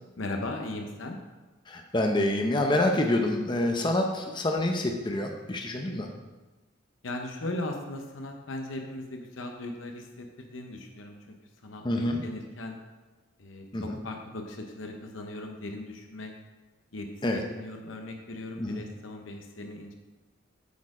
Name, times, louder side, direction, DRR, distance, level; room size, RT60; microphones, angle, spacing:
voice 1, 0.2-1.2 7.0-11.2 11.6-12.8 13.4-16.3 16.9-19.9, left 2 dB, 80° left, 3 dB, 0.8 m, -38 dB
voice 2, 1.7-6.1 11.8-12.2 13.7-13.9 17.2-17.4 18.6-18.8, left 1 dB, 25° left, 3 dB, 0.6 m, -27 dB
8.3 x 4.4 x 4.9 m, 1.2 s
head